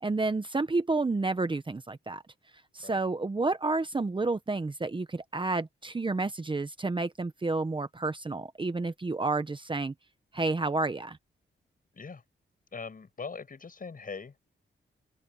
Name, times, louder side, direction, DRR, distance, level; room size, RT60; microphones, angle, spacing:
voice 1, 0.0-2.2 2.7-9.9 10.3-11.2, right 3 dB, 25° right, 1.0 m, -30 dB
voice 2, 12.7-14.3, left 5 dB, 45° left, 7.3 m, -41 dB
open air
cardioid pair, 95°, 20 cm